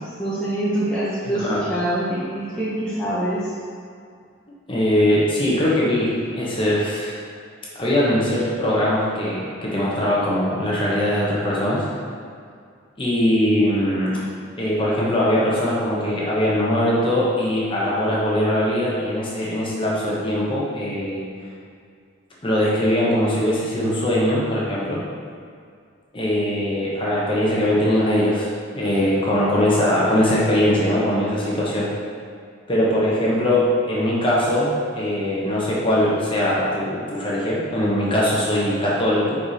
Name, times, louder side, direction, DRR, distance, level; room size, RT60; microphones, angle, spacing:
voice 1, 0.0-3.5, right 1 dB, 5° left, -11 dB, 0.8 m, -25 dB
voice 2, 4.7-7.2 7.7-11.9 13.0-14.2 14.6-21.3 22.4-25.0 26.1-28.5 28.7-31.9 32.7-39.4, left 1 dB, 25° left, -6 dB, 1.1 m, -21 dB
4.9 x 4.6 x 4.2 m, 2.2 s
head